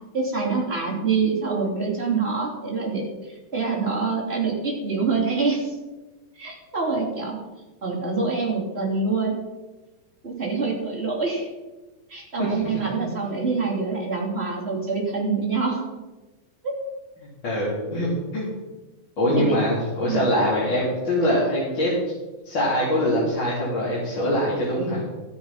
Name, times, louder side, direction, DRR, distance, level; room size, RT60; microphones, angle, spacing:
voice 1, 0.1-5.7 6.4-7.4 7.8-9.3 10.2-11.5 12.1-15.9 16.6-16.7 19.4-19.5 20.0-20.2, right 4 dB, 20° right, -4 dB, 3.0 m, -25 dB
voice 2, 17.2-18.5 19.2-21.9 22.4-25.0, equal, 30° left, -8 dB, 3.6 m, -23 dB
14.0 x 8.8 x 5.8 m, 1.2 s
omnidirectional pair, 4.2 m